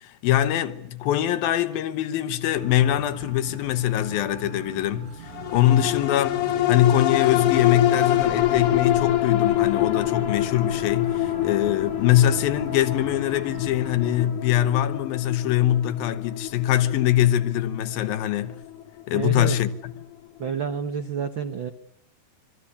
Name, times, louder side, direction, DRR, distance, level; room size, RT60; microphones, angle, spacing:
voice 1, 0.0-5.1 5.5-6.4 6.7-18.6 19.1-19.7, left 12 dB, 80° left, 3.0 m, -23 dB
sound 1, 2.5-14.3, right 2 dB, 40° right, 3.0 m, -42 dB
sound 2, 5.3-20.0 20.4-20.5, left 13 dB, 65° left, 2.7 m, -26 dB
voice 2, 19.1-19.6 20.4-21.7, right 7 dB, 75° right, 1.1 m, -29 dB
26.5 x 22.5 x 8.5 m
omnidirectional pair, 4.1 m